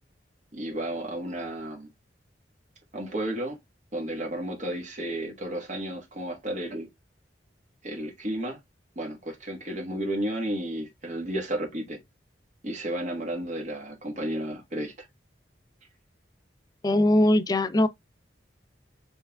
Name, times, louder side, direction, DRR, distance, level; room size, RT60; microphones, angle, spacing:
voice 1, 0.5-1.9 2.9-3.6 3.9-6.9 7.8-8.6 9.0-12.0 12.6-14.9, right 1 dB, 45° right, 1.3 m, -32 dB
voice 2, 16.8-17.9, left 1 dB, 20° left, 0.3 m, -21 dB
5.4 x 3.3 x 2.2 m
head